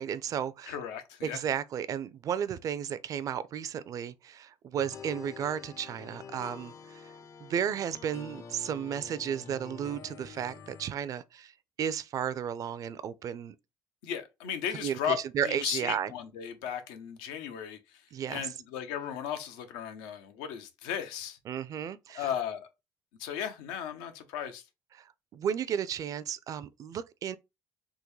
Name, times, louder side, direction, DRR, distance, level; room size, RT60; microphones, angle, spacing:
voice 1, 0.0-0.7 1.2-7.1 7.4-11.5 11.8-13.5 14.8-16.1 18.1-18.4 21.5-22.3 25.3-27.4, right 8 dB, 50° right, 0.4 m, -33 dB
voice 2, 0.7-1.4 14.0-18.0 18.3-21.4 22.1-22.7 23.2-24.6, left 9 dB, 90° left, 0.6 m, -36 dB
sound 1, 4.8-10.9, left 5 dB, 45° left, 0.5 m, -47 dB
3.6 x 2.2 x 3.0 m
supercardioid pair, 90°, 8 cm